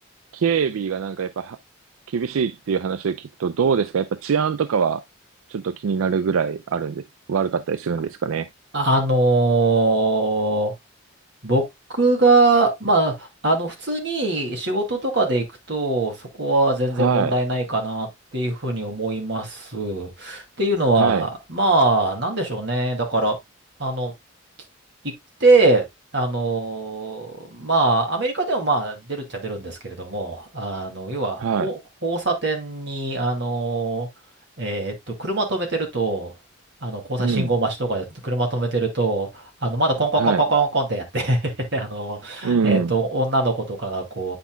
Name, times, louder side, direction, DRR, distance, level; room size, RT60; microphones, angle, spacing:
voice 1, 0.3-1.6 2.1-5.0 5.5-7.0 7.3-8.5 17.0-17.3 21.0-21.3 31.4-31.7 37.2-37.5 40.2-40.4 42.4-42.9, right 6 dB, 90° right, 0.4 m, -23 dB
voice 2, 8.7-10.7 11.4-11.6 11.9-23.4 23.8-24.1 25.4-25.9 26.1-34.1 34.6-36.3 36.8-44.4, right 2 dB, 55° right, 2.4 m, -22 dB
8.4 x 5.7 x 2.2 m
head